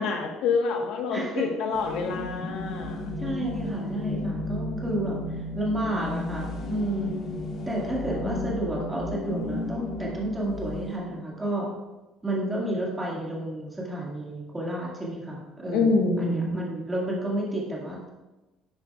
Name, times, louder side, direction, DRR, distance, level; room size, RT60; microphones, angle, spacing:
voice 1, 0.0-3.0 8.2-8.5 15.7-16.6, left 4 dB, 65° left, 3 dB, 1.3 m, -26 dB
voice 2, 1.1-1.5 3.2-7.2 7.7-11.7 12.2-18.1, right 1 dB, 10° right, -4 dB, 2.0 m, -31 dB
sound 1, 1.7-11.0, left 2 dB, 45° left, 1.3 m, -33 dB
11.5 x 8.2 x 2.4 m, 1.1 s
cardioid pair, 165°, 0 cm